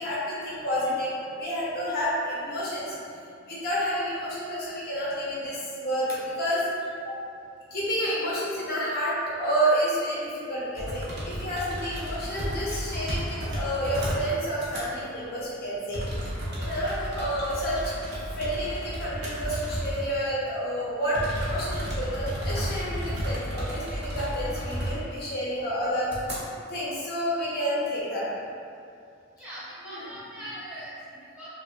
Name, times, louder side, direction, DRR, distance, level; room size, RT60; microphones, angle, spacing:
voice 1, 0.0-3.0 3.5-6.6 7.0-7.1 7.7-16.0 16.6-26.1 26.7-28.3 29.8-30.0, equal, 50° left, -7 dB, 0.8 m, -29 dB
sound 1, 10.8-14.3 14.6-14.8 15.9-20.1 20.5-20.6 21.1-25.2 25.6-25.7 26.1-26.4, equal, 55° right, 0.7 m, -33 dB
voice 2, 29.4-31.5, equal, 5° right, -13 dB, 0.7 m, -41 dB
3.3 x 2.4 x 2.5 m, 2.5 s
head